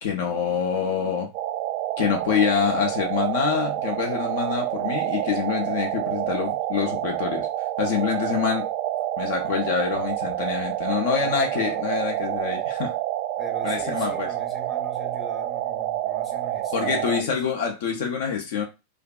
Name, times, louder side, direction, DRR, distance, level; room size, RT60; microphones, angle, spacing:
voice 1, 0.0-1.3 2.0-7.5 7.8-8.6 9.2-12.9 13.6-14.3 16.7-18.6, left 7 dB, 55° left, 0.5 m, -26 dB
sound 1, 1.3-17.2, right 13 dB, 45° right, 0.3 m, -28 dB
voice 2, 11.2-11.9 13.4-17.4, left 1 dB, 15° left, 0.8 m, -42 dB
2.5 x 2.3 x 2.3 m
figure-of-eight pair, 90°, 0 cm